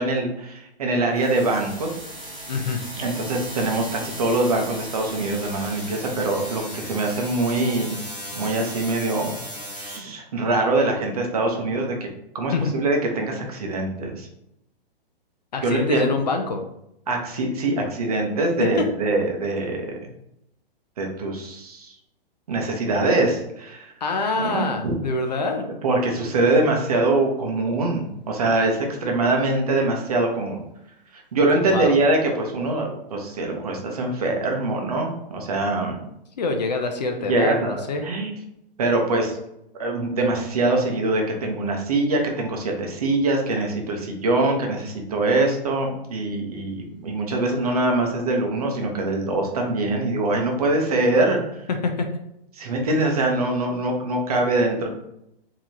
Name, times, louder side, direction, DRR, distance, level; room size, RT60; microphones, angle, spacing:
voice 1, 0.0-2.0 3.0-8.0 8.3-9.4 9.7-12.1 12.3-14.3 15.6-16.1 17.1-19.9 21.0-21.9 22.5-23.9 24.3-24.9 25.8-30.6 31.1-36.0 37.3-38.4 38.8-39.4 39.7-51.7 52.5-54.9, right 2 dB, 40° right, 1 dB, 0.8 m, -23 dB
sound 1, 1.1-10.0, equal, 5° left, 1.4 m, -36 dB
voice 2, 2.5-2.8 12.5-12.8 15.5-16.6 18.6-18.9 24.0-25.7 31.7-32.0 36.4-38.1 51.8-52.1, left 3 dB, 45° left, 5 dB, 0.5 m, -25 dB
4.7 x 2.9 x 2.7 m, 0.81 s
hypercardioid pair, 175°, 29 cm